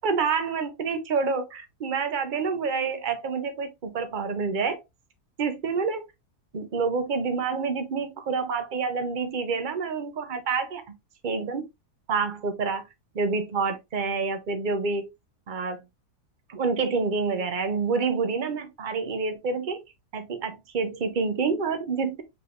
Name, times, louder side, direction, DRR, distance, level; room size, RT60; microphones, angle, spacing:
voice 1, 0.0-4.8 5.4-6.0 6.5-11.0 11.2-11.6 12.1-12.8 13.1-15.1 15.5-15.8 16.5-19.8 20.1-22.2, right 5 dB, 45° right, 0.6 m, -28 dB
4.8 x 3.4 x 2.5 m
omnidirectional pair, 1.7 m